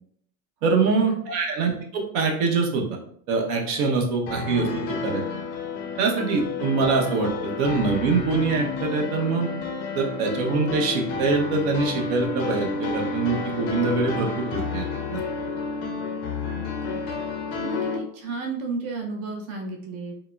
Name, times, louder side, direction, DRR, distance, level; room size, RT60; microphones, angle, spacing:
voice 1, 0.6-2.8 3.3-4.7 5.0-5.2 6.0-9.5 9.9-14.8 15.1-15.2, right 4 dB, 70° right, 2 dB, 0.8 m, -24 dB
sound 1, 4.3-18.0, left 4 dB, 35° left, 0.4 m, -30 dB
voice 2, 16.5-17.1 17.6-20.1, right 3 dB, 35° right, 1 dB, 0.5 m, -33 dB
3.7 x 2.0 x 2.2 m, 0.66 s
supercardioid pair, 110°, 46 cm